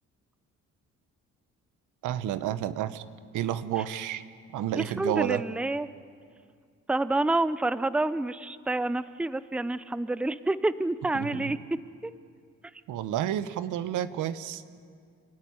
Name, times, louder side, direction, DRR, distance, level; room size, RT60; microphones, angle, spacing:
voice 1, 2.0-3.0 3.3-4.2 4.5-5.4 11.1-11.5 12.9-14.9, right 11 dB, 85° right, 13 dB, 0.9 m, -30 dB
voice 2, 4.8-5.9 6.9-11.6 12.0-12.1, right 2 dB, 5° right, 15 dB, 0.6 m, -28 dB
29.5 x 13.5 x 9.6 m, 2.2 s
cardioid pair, 90°, 30 cm